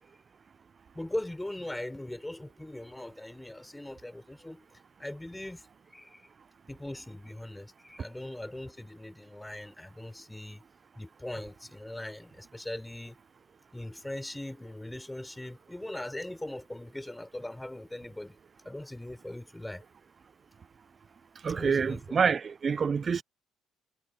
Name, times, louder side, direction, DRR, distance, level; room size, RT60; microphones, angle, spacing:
voice 1, 0.9-4.7 5.0-5.6 5.9-6.2 6.7-10.6 11.0-13.2 13.7-18.4 18.6-19.8 21.5-22.2, left 1 dB, 10° left, 6.0 m, -40 dB
voice 2, 21.4-23.2, right 6 dB, 40° right, 0.5 m, -27 dB
supercardioid pair, 70°, 0 cm